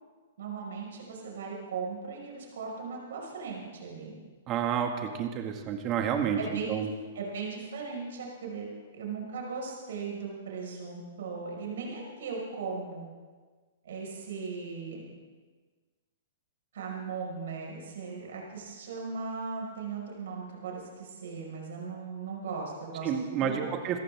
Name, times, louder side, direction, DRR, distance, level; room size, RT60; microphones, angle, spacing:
voice 1, 0.4-4.1 6.4-6.9 7.1-8.7 8.9-13.1 13.8-15.1 16.7-23.1 23.4-23.7, right 5 dB, 70° right, -1 dB, 5.5 m, -38 dB
voice 2, 4.5-6.4 6.7-6.9 23.0-24.0, right 8 dB, 35° right, 4 dB, 2.1 m, -30 dB
27.0 x 14.0 x 3.7 m, 1.4 s
hypercardioid pair, 120°, 0 cm